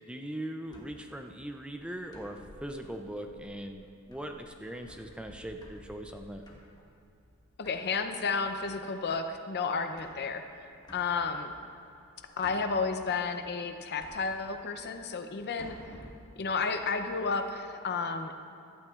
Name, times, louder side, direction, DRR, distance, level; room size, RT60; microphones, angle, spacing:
voice 1, 0.1-6.4, right 1 dB, 5° right, 4 dB, 0.4 m, -40 dB
sound 1, 0.7-17.5, equal, 20° left, 1.3 m, -55 dB
voice 2, 7.6-10.4 10.9-11.5 12.4-15.9 16.4-18.4, left 4 dB, 50° left, 7 dB, 0.6 m, -32 dB
15.5 x 12.0 x 2.4 m, 2.7 s
head